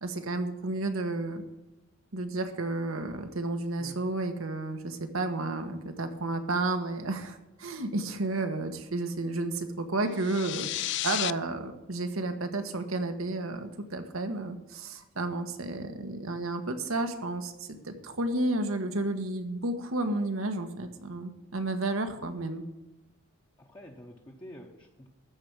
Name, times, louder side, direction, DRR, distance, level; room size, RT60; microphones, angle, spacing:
voice 1, 0.0-1.4 2.1-22.6, right 2 dB, 90° right, 6 dB, 1.4 m, -32 dB
sound 1, 10.2-11.3, left 15 dB, 55° left, 0.3 m, -32 dB
voice 2, 23.6-25.1, equal, 20° left, -1 dB, 1.0 m, -48 dB
13.5 x 4.7 x 9.0 m, 1.0 s
head